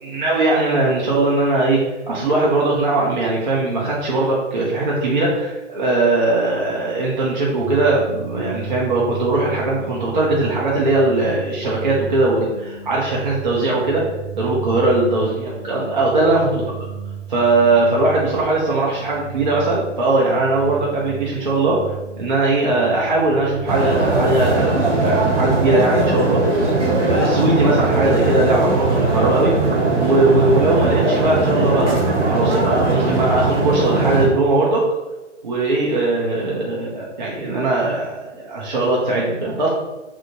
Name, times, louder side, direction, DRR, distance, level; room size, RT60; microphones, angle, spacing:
voice 1, 0.0-14.0 14.3-16.7 17.3-26.7 27.1-29.5 30.0-34.9 35.4-39.7, right 2 dB, 40° right, -4 dB, 0.5 m, -19 dB
sound 1, 7.6-25.4, right 7 dB, 75° left, 0.9 m, -34 dB
sound 2, 23.7-34.3, right 2 dB, 70° right, 1.0 m, -19 dB
2.9 x 2.0 x 2.7 m, 1.1 s
figure-of-eight pair, 135°, 37 cm